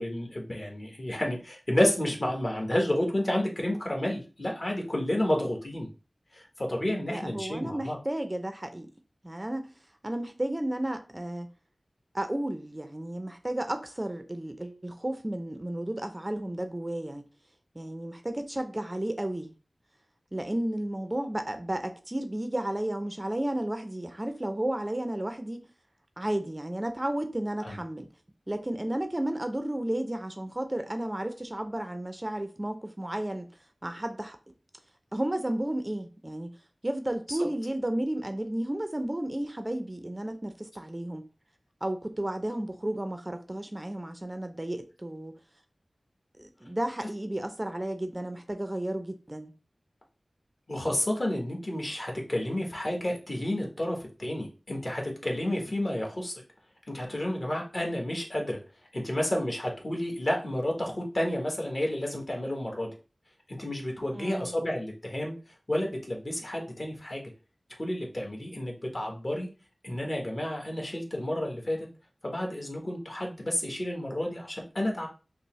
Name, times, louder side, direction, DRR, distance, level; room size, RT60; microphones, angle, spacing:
voice 1, 0.0-5.9 6.3-8.0 27.6-27.8 37.3-37.4 50.7-56.4 56.9-58.6 58.9-62.9 63.5-65.3 65.7-67.3 67.8-69.5 69.8-71.9 72.2-75.1, left 1 dB, 45° left, 1.2 m, -30 dB
voice 2, 7.1-8.9 9.2-9.7 10.0-11.5 12.1-17.2 17.8-19.5 20.3-25.7 26.2-28.1 28.5-33.5 33.8-34.4 35.1-36.5 36.8-41.2 41.8-45.3 46.4-49.5 64.1-64.5, right 1 dB, 25° right, 0.4 m, -33 dB
5.3 x 2.0 x 3.0 m
wide cardioid pair, 65°, 0 cm